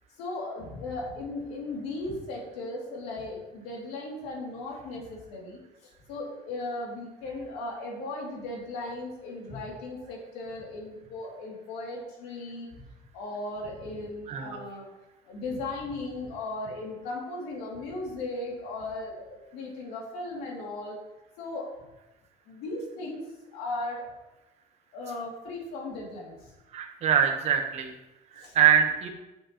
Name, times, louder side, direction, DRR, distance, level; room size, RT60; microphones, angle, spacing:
voice 1, 0.2-5.6 6.1-12.7 13.1-14.8 15.3-21.0 21.4-21.7 22.5-23.2 23.5-24.2 24.9-26.4 28.3-28.5, left 2 dB, 90° left, -2 dB, 2.7 m, -37 dB
voice 2, 14.3-14.6 26.7-27.9 28.4-29.1, right 8 dB, 45° right, 4 dB, 1.2 m, -24 dB
9.7 x 7.2 x 3.0 m, 1.0 s
cardioid pair, 155°, 15 cm